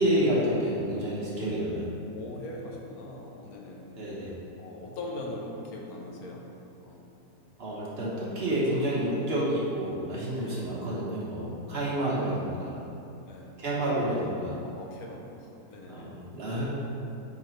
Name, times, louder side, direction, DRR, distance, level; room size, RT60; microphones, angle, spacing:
voice 1, 0.0-1.9 3.9-4.4 7.6-12.8 13.6-14.6 15.9-16.7, right 1 dB, 40° right, -7 dB, 1.4 m, -29 dB
voice 2, 2.1-3.9 4.6-6.5 6.8-7.0 10.4-10.6 11.8-12.2 13.3-13.5 14.7-16.1, left 2 dB, 70° left, -1 dB, 1.2 m, -41 dB
8.0 x 3.9 x 3.2 m, 2.7 s
omnidirectional pair, 1.7 m